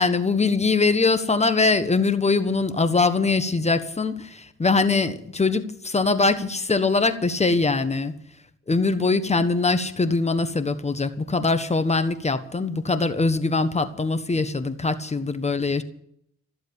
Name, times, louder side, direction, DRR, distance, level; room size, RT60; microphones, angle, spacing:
voice 1, 0.0-8.1 8.7-15.8, left 3 dB, 20° left, 10 dB, 1.4 m, -22 dB
14.5 x 7.8 x 9.8 m, 0.71 s
cardioid pair, 90°, 30 cm